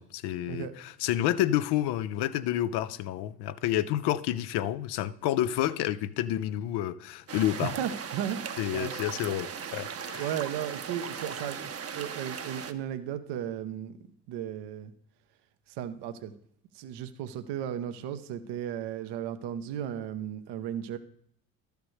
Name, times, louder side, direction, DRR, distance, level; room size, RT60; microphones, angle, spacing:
voice 1, 0.0-7.7 8.6-10.3, left 12 dB, 60° left, 0.7 m, -29 dB
sound 1, 7.3-12.7, right 7 dB, 30° right, 0.9 m, -38 dB
voice 2, 7.6-8.4 8.7-8.9 10.2-14.0 14.3-14.9 15.7-16.3 16.7-21.0, right 10 dB, 60° right, 0.9 m, -35 dB
13.0 x 6.8 x 3.2 m
hypercardioid pair, 55°, 45 cm